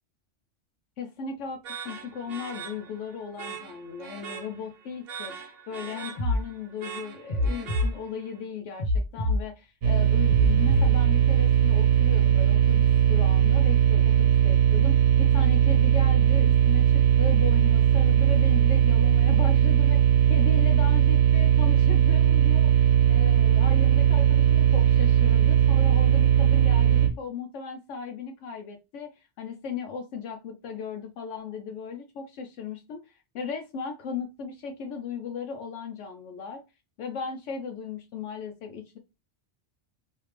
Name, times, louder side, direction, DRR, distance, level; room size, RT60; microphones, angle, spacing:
voice 1, 1.0-36.6 37.0-39.0, left 5 dB, 85° left, 3 dB, 0.9 m, -37 dB
sound 1, 1.6-8.4, right 6 dB, 60° right, 0.9 m, -42 dB
sound 2, 6.2-6.4 7.3-7.9 8.8-9.4 10.3-10.9, left 2 dB, 45° left, 0.9 m, -24 dB
sound 3, 9.8-27.1, right 9 dB, 80° right, 1.1 m, -19 dB
3.2 x 2.8 x 3.1 m, 0.27 s
omnidirectional pair, 1.2 m